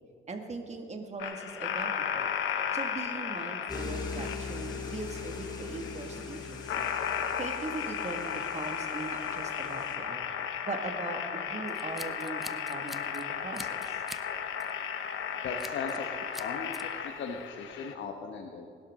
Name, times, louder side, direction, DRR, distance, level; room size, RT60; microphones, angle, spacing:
voice 1, 0.3-2.3 2.7-6.9 7.4-12.4 12.7-14.0, right 3 dB, 35° right, 3 dB, 2.0 m, -40 dB
sound 1, 1.2-17.9, left 8 dB, 90° left, 1.0 m, -35 dB
sound 2, 3.7-9.9, left 4 dB, 20° left, 2.4 m, -41 dB
Scissors, 11.7-13.2 13.5-14.3 14.6-14.8 15.6-16.0 16.3-16.8, equal, ahead, 0.7 m, -45 dB
voice 2, 15.4-16.9 17.1-18.7, left 5 dB, 70° left, 3 dB, 1.3 m, -38 dB
20.0 x 12.0 x 3.8 m, 2.6 s
cardioid pair, 90°, 20 cm